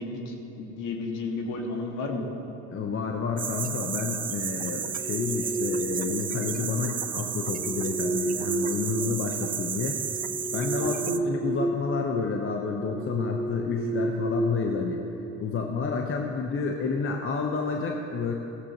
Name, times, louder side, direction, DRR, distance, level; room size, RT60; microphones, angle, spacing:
voice 1, 0.0-2.3 10.8-11.0, left 3 dB, 60° left, 2 dB, 2.0 m, -33 dB
voice 2, 2.7-9.9 10.5-15.0 15.4-18.3, left 5 dB, 35° left, 2 dB, 1.1 m, -30 dB
sound 1, 3.4-11.2, right 8 dB, 25° right, 0.5 m, -33 dB
sound 2, 4.8-6.3 7.3-9.4 9.9-11.8 12.1-12.3 12.8-15.2, right 2 dB, 10° left, 3.0 m, -31 dB
16.0 x 14.0 x 3.1 m, 2.9 s
hypercardioid pair, 70°, 35 cm